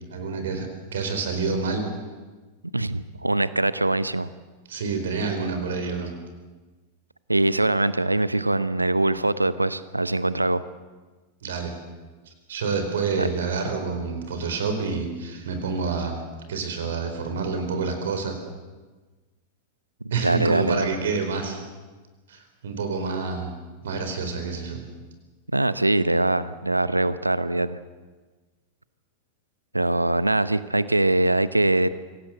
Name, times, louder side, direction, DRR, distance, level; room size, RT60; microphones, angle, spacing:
voice 1, 0.1-1.9 4.7-6.1 11.4-11.7 12.3-16.2 16.5-18.3 20.1-21.6 22.3-23.5 23.8-24.8, right 4 dB, 65° right, 6 dB, 4.5 m, -28 dB
voice 2, 2.7-4.3 7.3-10.6 13.2-13.3 20.2-21.0 25.5-27.8 29.7-31.9, right 2 dB, 85° right, 16 dB, 0.8 m, -22 dB
25.0 x 17.5 x 8.0 m, 1.3 s
figure-of-eight pair, 90°, 0 cm